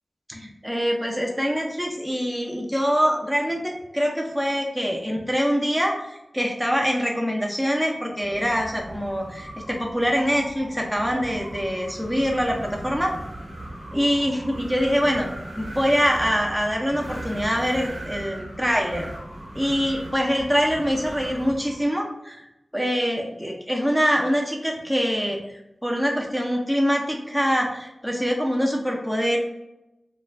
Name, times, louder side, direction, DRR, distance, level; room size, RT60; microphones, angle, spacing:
voice 1, 0.3-13.1 13.9-15.3 15.6-19.1 19.5-22.4 22.7-25.4 25.8-29.4, equal, 5° right, -1 dB, 0.6 m, -24 dB
Wind, 8.2-21.8, right 1 dB, 60° right, 0.8 m, -38 dB
2.4 x 2.3 x 3.2 m, 0.90 s
wide cardioid pair, 60°, 0 cm